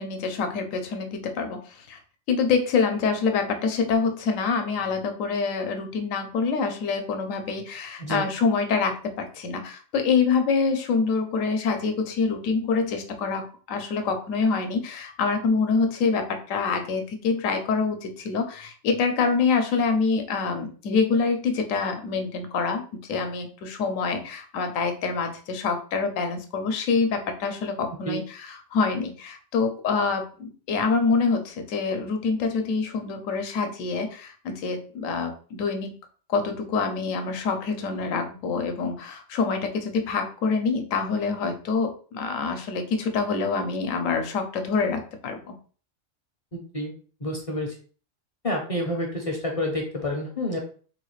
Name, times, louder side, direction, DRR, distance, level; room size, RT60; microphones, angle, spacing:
voice 1, 0.0-2.0 2.3-36.0 36.3-45.5, left 4 dB, 80° left, 6 dB, 1.0 m, -26 dB
voice 2, 46.5-46.9 47.2-47.7 48.4-50.6, left 1 dB, 40° left, 0 dB, 0.5 m, -29 dB
3.7 x 2.3 x 3.1 m, 0.41 s
omnidirectional pair, 1.3 m